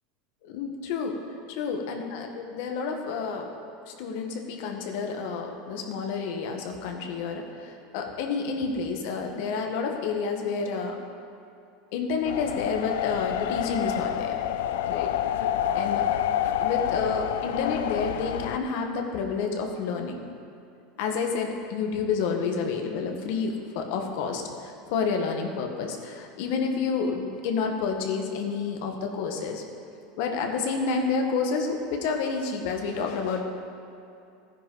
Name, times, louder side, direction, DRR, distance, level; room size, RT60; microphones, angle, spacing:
voice 1, 0.4-1.2 1.5-3.5 3.9-11.0 11.9-14.4 14.8-15.1 15.7-16.0 16.6-20.2 21.0-29.6 30.2-33.4, left 5 dB, 65° left, 3 dB, 1.6 m, -29 dB
sound 1, 12.3-18.6, left 10 dB, 85° left, 0.5 m, -28 dB
15.5 x 9.9 x 4.0 m, 2.6 s
supercardioid pair, 145°, 0 cm